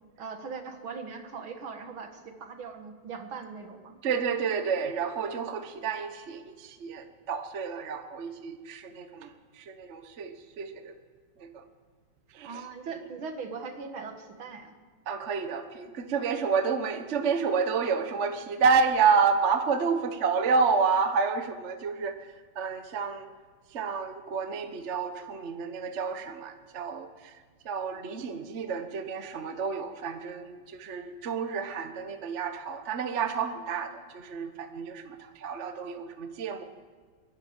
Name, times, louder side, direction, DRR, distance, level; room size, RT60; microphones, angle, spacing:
voice 1, 0.2-4.0 12.4-14.7, right 5 dB, 70° right, 6 dB, 2.4 m, -40 dB
voice 2, 4.0-9.3 9.6-10.9 11.4-11.6 12.3-12.6 12.9-13.0 15.1-23.3 23.7-27.3 27.6-36.6, right 5 dB, 40° right, 8 dB, 1.2 m, -29 dB
28.0 x 11.5 x 8.1 m, 1.5 s
omnidirectional pair, 2.4 m